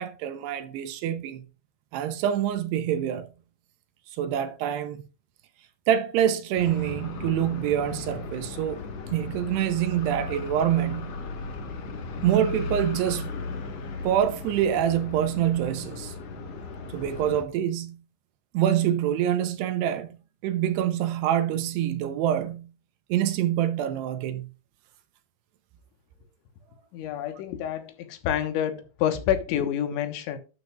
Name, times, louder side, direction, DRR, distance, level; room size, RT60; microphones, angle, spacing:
voice 1, 0.0-1.4 1.9-3.3 4.1-5.0 5.9-8.8 9.1-11.1 12.2-13.3 14.0-16.1 16.9-18.0 18.5-20.2 20.4-22.7 23.1-24.5, right 10 dB, 80° right, 2.7 m, -26 dB
sound 1, 6.5-17.4, left 3 dB, 70° left, 1.5 m, -36 dB
voice 2, 26.9-30.4, left 10 dB, 90° left, 3.6 m, -28 dB
12.0 x 9.4 x 2.4 m
omnidirectional pair, 5.3 m